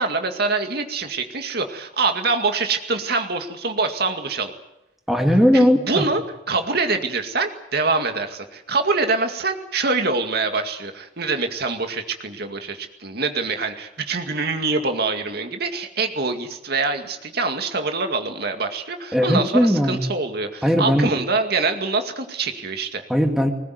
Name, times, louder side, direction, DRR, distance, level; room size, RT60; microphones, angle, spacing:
voice 1, 0.0-4.5 5.5-6.2 6.5-23.1, right 3 dB, 60° right, 6 dB, 2.2 m, -25 dB
voice 2, 5.1-6.0 19.1-20.0 20.6-21.1 23.1-23.5, equal, ahead, 3 dB, 2.5 m, -18 dB
20.5 x 20.0 x 9.5 m, 0.88 s
head